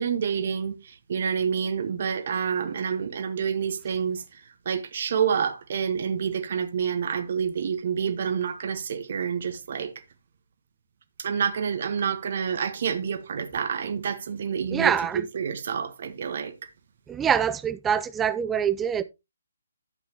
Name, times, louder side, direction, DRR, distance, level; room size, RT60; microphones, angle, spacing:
voice 1, 0.0-9.9 11.2-16.5, right 7 dB, 45° right, 1.2 m, -28 dB
voice 2, 14.7-15.2 17.1-19.0, right 8 dB, 10° right, 0.5 m, -24 dB
12.0 x 7.9 x 2.9 m
figure-of-eight pair, 135°, 0 cm